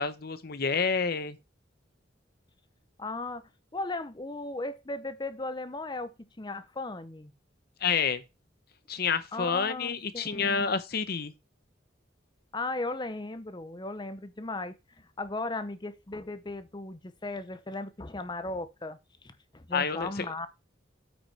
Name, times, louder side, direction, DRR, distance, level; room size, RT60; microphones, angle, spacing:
voice 1, 0.0-1.4 7.8-8.2 8.9-11.3 19.7-20.3, left 5 dB, 55° left, 0.9 m, -29 dB
voice 2, 3.0-7.3 9.3-10.7 12.5-20.5, left 2 dB, 25° left, 0.7 m, -37 dB
8.8 x 5.0 x 4.7 m
head